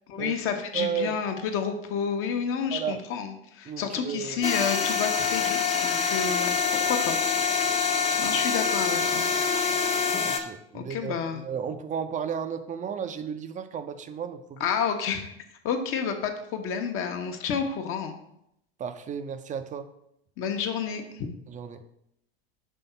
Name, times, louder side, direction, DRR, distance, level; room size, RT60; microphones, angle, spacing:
voice 1, 0.1-7.2 8.2-9.2 10.7-11.5 14.6-15.3 15.6-18.2 20.4-21.3, left 7 dB, 45° left, 5 dB, 1.0 m, -30 dB
voice 2, 0.7-1.2 2.7-3.0 3.6-4.5 10.2-14.6 18.8-19.9 21.5-21.8, right 7 dB, 25° right, 9 dB, 0.6 m, -33 dB
sound 1, 4.4-10.4, left 5 dB, 20° left, 0.7 m, -25 dB
5.6 x 3.5 x 5.6 m, 0.77 s
hypercardioid pair, 80°, 31 cm